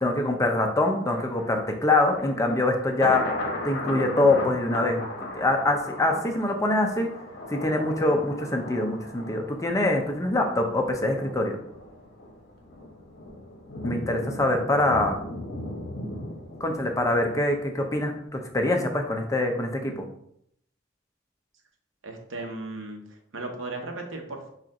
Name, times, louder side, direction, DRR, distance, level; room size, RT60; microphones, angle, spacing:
voice 1, 0.0-3.2 3.6-7.1 7.5-11.6 13.8-15.2 16.6-20.0, left 2 dB, 15° left, 3 dB, 0.6 m, -24 dB
Thunder, 1.1-18.2 18.6-18.7, left 1 dB, 55° left, 1.0 m, -37 dB
voice 2, 22.0-24.5, right 2 dB, 80° right, 3 dB, 0.9 m, -36 dB
4.3 x 2.5 x 4.8 m, 0.72 s
head